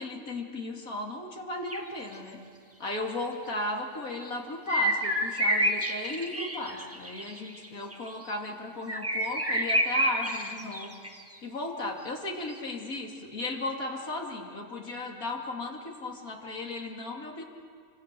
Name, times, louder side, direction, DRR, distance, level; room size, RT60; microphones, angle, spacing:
voice 1, 0.0-2.4 2.8-10.9 11.4-17.4, left 2 dB, 80° left, 0 dB, 3.2 m, -35 dB
sound 1, 1.7-1.8 4.7-7.7 7.9-8.3 8.9-11.1 12.5-12.6, equal, 10° right, 1.6 m, -28 dB
27.5 x 25.5 x 6.9 m, 2.2 s
omnidirectional pair, 1.5 m